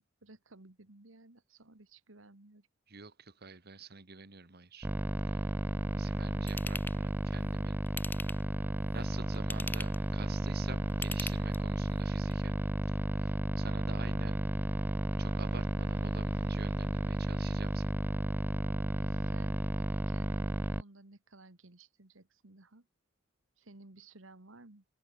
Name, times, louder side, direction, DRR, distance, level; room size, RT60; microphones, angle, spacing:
voice 1, 0.0-2.7 19.0-22.9 23.6-24.8, right 2 dB, 85° right, 1.9 m, -56 dB
voice 2, 2.9-4.9 5.4-5.5 5.9-7.8 8.9-12.6 12.9-14.4 15.2-18.0, right 4 dB, 55° right, 1.8 m, -48 dB
sound 1, 4.8-20.8, right 1 dB, 10° right, 0.5 m, -33 dB
Ratchet pawl / Tools, 6.5-7.0 7.9-8.6 9.3-10.1 10.9-11.8 12.3-12.4, left 3 dB, 10° left, 0.9 m, -40 dB
sound 2, 8.6-19.3, equal, 45° left, 4.3 m, -57 dB
open air
head